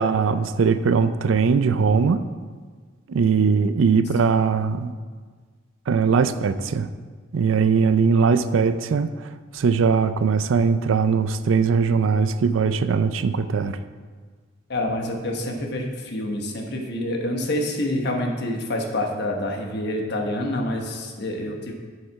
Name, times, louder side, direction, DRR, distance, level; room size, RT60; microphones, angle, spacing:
voice 1, 0.0-2.2 3.1-4.9 5.9-6.9 7.3-9.1 9.5-13.8, right 5 dB, 75° right, 12 dB, 0.4 m, -20 dB
voice 2, 14.7-21.7, left 1 dB, 60° left, 1 dB, 1.1 m, -27 dB
7.5 x 6.6 x 4.7 m, 1.5 s
head